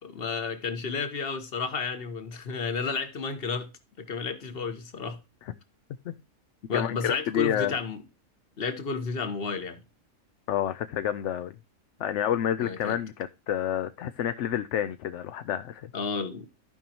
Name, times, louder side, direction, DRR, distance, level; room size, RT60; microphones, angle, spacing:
voice 1, 0.0-3.7 4.0-5.2 6.7-8.0 8.6-9.8 12.6-13.0 15.9-16.5, left 5 dB, 45° left, 1.3 m, -32 dB
voice 2, 6.7-7.8 10.5-11.6 12.0-15.9, left 10 dB, 65° left, 0.8 m, -29 dB
14.5 x 5.3 x 2.8 m
omnidirectional pair, 1.5 m